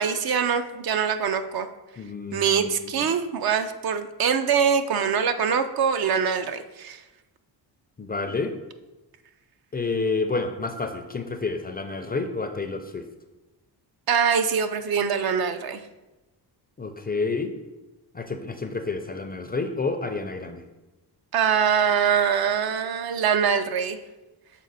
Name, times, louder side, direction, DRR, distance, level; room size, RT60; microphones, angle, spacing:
voice 1, 0.0-1.7 2.3-7.0 14.1-15.8 21.3-24.0, right 7 dB, 60° right, 9 dB, 0.5 m, -23 dB
voice 2, 2.0-3.1 8.0-8.5 9.7-13.0 16.8-17.5 18.1-20.6, left 3 dB, 25° left, 7 dB, 0.4 m, -29 dB
6.4 x 4.1 x 4.0 m, 1.1 s
cardioid pair, 115°, 42 cm